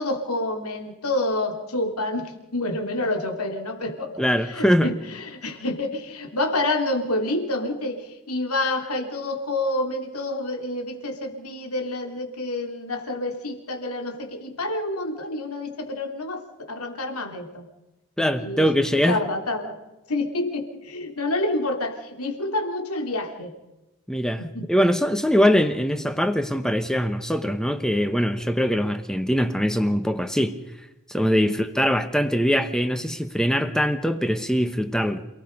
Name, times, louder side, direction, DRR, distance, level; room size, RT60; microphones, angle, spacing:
voice 1, 0.0-4.1 4.5-17.6 18.4-18.7 19.1-19.8 20.1-23.5 24.4-24.7 31.3-31.7, left 2 dB, 85° left, 4 dB, 3.5 m, -28 dB
voice 2, 4.2-4.9 18.2-19.2 24.1-30.5 31.1-35.2, equal, 5° left, 9 dB, 1.1 m, -22 dB
28.5 x 18.5 x 5.5 m, 0.99 s
head